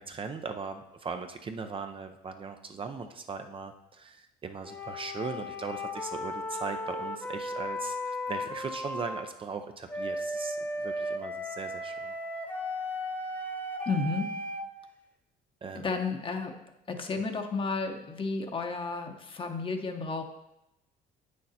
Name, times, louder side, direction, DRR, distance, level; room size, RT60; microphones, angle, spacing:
voice 1, 0.0-12.1 15.6-15.9, right 5 dB, 30° right, 6 dB, 0.6 m, -39 dB
sound 1, 4.6-9.2 9.9-14.7, left 1 dB, 10° left, 1.1 m, -35 dB
voice 2, 13.9-14.3 15.8-16.5 16.9-20.2, left 4 dB, 30° left, 5 dB, 1.0 m, -32 dB
8.0 x 6.5 x 4.2 m, 0.88 s
cardioid pair, 110°, 17 cm